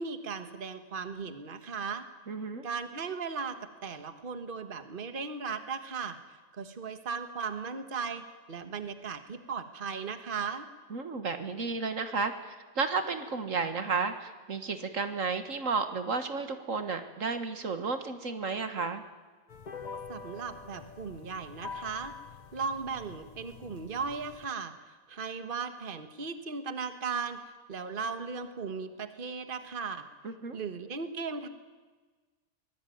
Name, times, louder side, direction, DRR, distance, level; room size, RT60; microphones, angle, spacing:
voice 1, 0.0-2.1 2.6-6.2 6.5-10.7 20.1-22.1 22.5-24.7 25.1-27.4 27.7-30.0 30.5-31.5, right 5 dB, 40° right, 9 dB, 1.6 m, -37 dB
voice 2, 2.3-2.7 10.9-19.0 30.2-30.6, right 4 dB, 60° right, 9 dB, 1.8 m, -32 dB
sound 1, 19.5-24.5, left 5 dB, 35° left, 0.9 m, -45 dB
24.0 x 19.5 x 9.3 m, 1.3 s
omnidirectional pair, 1.5 m